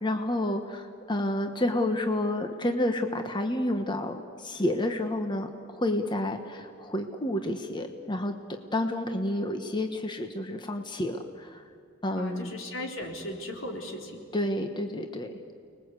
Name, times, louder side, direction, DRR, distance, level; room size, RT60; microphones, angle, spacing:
voice 1, 0.0-8.3 8.7-11.6 12.0-12.6 14.3-15.5, left 1 dB, 25° left, 5 dB, 1.2 m, -30 dB
voice 2, 12.1-14.2, left 1 dB, 80° left, 1 dB, 4.0 m, -37 dB
29.5 x 20.5 x 8.2 m, 2.5 s
head